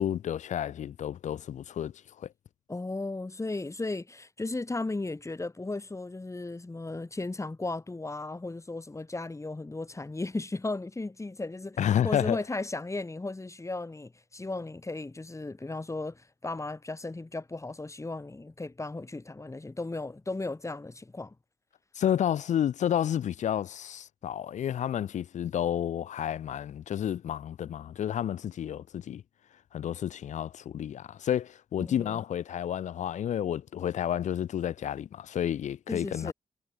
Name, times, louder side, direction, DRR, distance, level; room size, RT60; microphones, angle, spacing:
voice 1, 0.0-2.3 11.8-12.4 21.9-29.2 29.7-36.3, left 10 dB, 90° left, 3.0 m, -30 dB
voice 2, 2.7-11.8 12.0-21.4 31.8-32.2 35.9-36.3, left 2 dB, 25° left, 5.7 m, -35 dB
cardioid pair, 70°, 12 cm